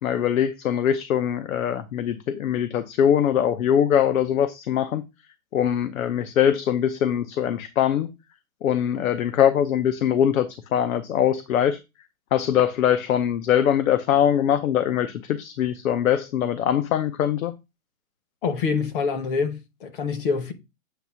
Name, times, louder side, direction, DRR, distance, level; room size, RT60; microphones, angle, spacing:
voice 1, 0.0-5.0 5.5-8.1 8.6-11.8 12.3-17.5, left 9 dB, 75° left, 0.8 m, -22 dB
voice 2, 18.4-20.5, left 5 dB, 40° left, 1.0 m, -26 dB
7.9 x 2.7 x 5.6 m
hypercardioid pair, 165°, 42 cm